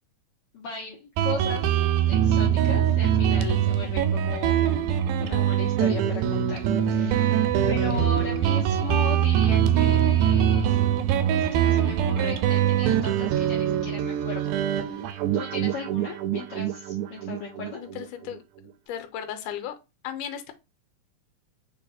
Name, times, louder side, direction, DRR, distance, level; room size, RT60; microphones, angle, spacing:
voice 1, 0.5-1.6 2.0-4.9 5.2-10.9 11.3-17.8, left 4 dB, 65° left, 1.4 m, -37 dB
Guitar, 1.2-18.4, right 10 dB, 80° right, 1.9 m, -23 dB
voice 2, 17.8-18.4 18.9-19.7 20.0-20.5, left 9 dB, 85° left, 2.2 m, -35 dB
6.2 x 3.2 x 2.5 m
omnidirectional pair, 3.7 m